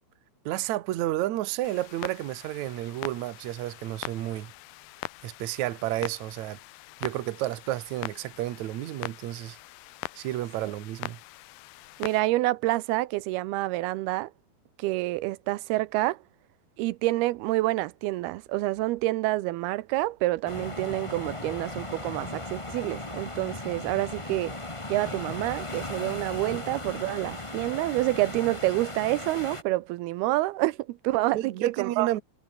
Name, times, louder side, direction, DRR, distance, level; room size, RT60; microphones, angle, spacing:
voice 1, 0.5-4.5 5.2-6.6 7.0-9.6 10.2-11.2 31.3-32.2, right 15 dB, 65° right, 2.0 m, -31 dB
Clock, 1.6-12.2, left 20 dB, 80° left, 2.3 m, -42 dB
voice 2, 12.0-14.3 14.8-16.2 16.8-24.6 24.9-32.1, right 18 dB, 90° right, 2.7 m, -28 dB
sound 1, 20.5-29.6, left 2 dB, 25° left, 0.6 m, -37 dB
omnidirectional pair, 4.5 m